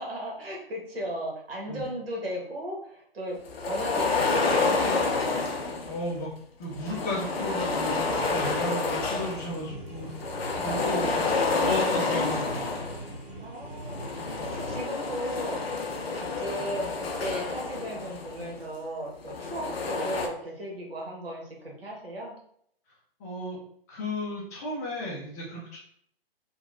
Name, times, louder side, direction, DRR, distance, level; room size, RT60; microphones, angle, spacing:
voice 1, 0.0-5.4 10.5-11.4 13.4-15.6 16.1-22.3, equal, 75° right, -2 dB, 1.1 m, -36 dB
sound 1, 3.5-6.1 6.7-9.6 10.0-13.2 13.8-18.6 19.2-20.3, left 3 dB, 85° left, 0.5 m, -29 dB
voice 2, 5.8-6.3 6.6-11.1 11.6-12.7 23.2-23.6 23.9-25.8, left 1 dB, 15° left, -5 dB, 0.4 m, -34 dB
sound 2, 8.0-14.8, right 1 dB, 5° right, 1.2 m, -42 dB
2.8 x 2.2 x 2.4 m, 0.66 s
figure-of-eight pair, 130°, 30 cm